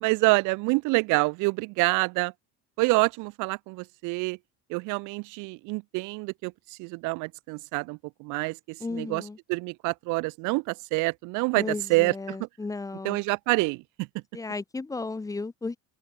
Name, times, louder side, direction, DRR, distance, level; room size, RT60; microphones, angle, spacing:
voice 1, 0.0-2.3 2.8-4.4 4.7-9.2 9.5-12.5 13.0-14.1, right 26 dB, 85° right, 0.6 m, -27 dB
voice 2, 8.8-9.4 11.5-13.2 14.3-15.8, left 3 dB, 10° left, 1.5 m, -34 dB
open air
cardioid pair, 165°, 30 cm